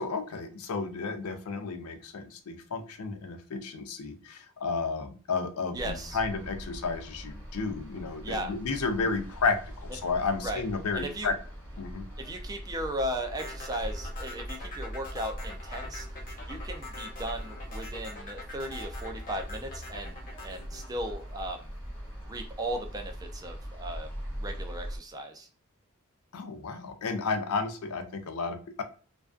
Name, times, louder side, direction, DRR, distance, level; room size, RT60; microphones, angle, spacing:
voice 1, 0.0-11.3 11.8-12.0 26.3-28.8, left 4 dB, 85° left, 7 dB, 0.5 m, -32 dB
sound 1, 5.7-25.0, equal, 10° left, 0.8 m, -41 dB
voice 2, 5.7-6.2 8.2-8.5 10.4-10.6 10.9-11.3 12.2-16.1 16.4-21.7 22.2-24.1 24.4-25.5, right 1 dB, 15° right, 4 dB, 0.4 m, -36 dB
sound 2, 13.4-21.7, left 2 dB, 40° left, 0.7 m, -44 dB
2.4 x 2.2 x 2.3 m, 0.40 s
head